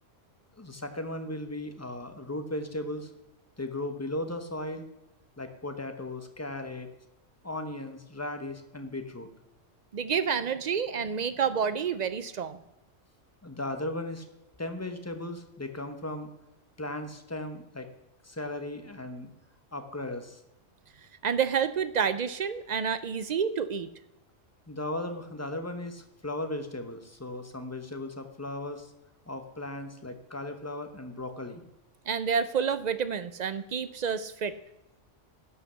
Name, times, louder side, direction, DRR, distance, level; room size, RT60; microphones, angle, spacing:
voice 1, 0.6-3.1 3.6-4.9 5.4-6.9 7.4-9.3 13.4-14.2 14.6-16.3 16.8-17.9 18.2-19.3 19.7-20.4 24.7-28.9 29.3-31.6, left 1 dB, 15° left, 7 dB, 0.9 m, -36 dB
voice 2, 9.9-12.6 21.2-23.9 32.1-34.5, right 7 dB, 60° right, 13 dB, 0.4 m, -29 dB
11.5 x 5.7 x 6.9 m, 0.93 s
omnidirectional pair, 1.3 m